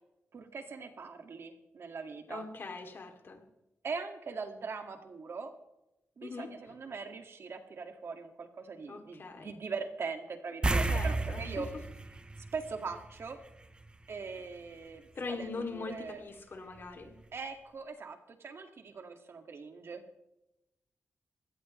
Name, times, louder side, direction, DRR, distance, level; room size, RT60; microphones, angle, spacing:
voice 1, 0.3-2.4 3.8-5.5 6.2-11.7 12.5-13.4 14.1-16.2 17.3-20.0, right 5 dB, 60° right, 5 dB, 2.0 m, -41 dB
voice 2, 2.3-3.4 6.2-6.7 8.9-9.5 10.9-11.7 15.1-17.2, left 4 dB, 50° left, 4 dB, 2.7 m, -41 dB
sound 1, 10.6-13.4 13.7-13.9 16.8-16.9 17.2-17.3, right 2 dB, 20° right, 0.7 m, -32 dB
21.0 x 17.0 x 3.2 m, 0.91 s
wide cardioid pair, 100°, 5 cm